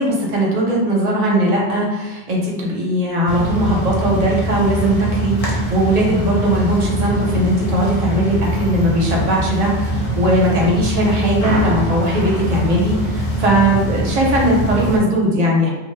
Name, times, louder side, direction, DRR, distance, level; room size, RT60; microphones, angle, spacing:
voice 1, 0.0-15.7, right 1 dB, 45° right, -3 dB, 0.6 m, -18 dB
sound 1, 3.3-15.0, equal, 60° left, 0.3 m, -22 dB
2.1 x 2.0 x 3.2 m, 1.1 s
omnidirectional pair, 1.3 m